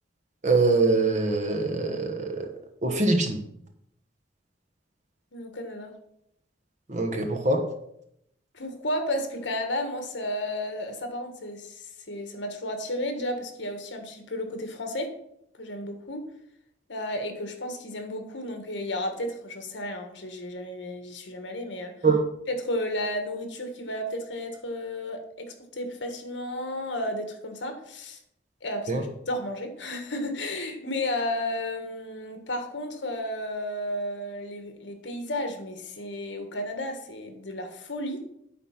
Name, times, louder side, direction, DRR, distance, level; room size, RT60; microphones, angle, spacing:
voice 1, 0.4-2.5 2.8-3.4 6.9-7.6 22.0-22.1 28.9-29.0, right 3 dB, 40° right, 3 dB, 1.2 m, -23 dB
voice 2, 5.3-5.9 8.5-15.1 15.6-16.2 16.9-21.9 22.5-25.4 25.7-28.2 28.6-38.2, left 1 dB, 70° left, 5 dB, 1.4 m, -33 dB
9.4 x 4.1 x 5.8 m, 0.75 s
head